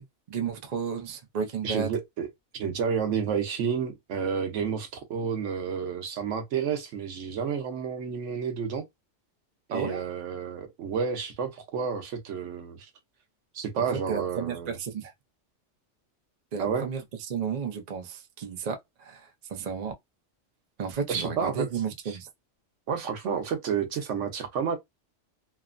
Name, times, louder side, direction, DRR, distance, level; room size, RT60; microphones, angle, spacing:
voice 1, 0.0-1.9 9.7-10.0 13.8-15.1 16.5-17.0 17.3-19.9 20.8-22.3, right 6 dB, 45° right, 0.6 m, -33 dB
voice 2, 1.6-2.3 2.5-8.9 9.7-12.9 13.5-14.8 16.6-16.9 21.1-21.7 22.1-22.2 22.9-24.8, right 6 dB, 80° right, 1.1 m, -30 dB
3.0 x 2.0 x 2.5 m
omnidirectional pair, 1.2 m